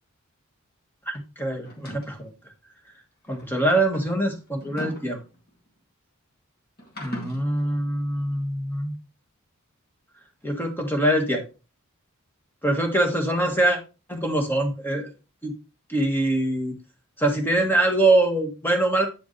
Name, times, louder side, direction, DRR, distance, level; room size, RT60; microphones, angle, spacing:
voice 1, 1.1-2.3 3.3-5.2 7.0-8.9 10.4-11.4 12.6-13.8 14.1-15.1 15.4-15.5 15.9-16.7 17.2-19.1, right 1 dB, 10° left, 3 dB, 1.3 m, -23 dB
sound 1, 1.6-2.2 3.3-5.7 6.8-7.4, equal, 45° left, 2.1 m, -38 dB
8.9 x 5.1 x 3.1 m, 0.30 s
head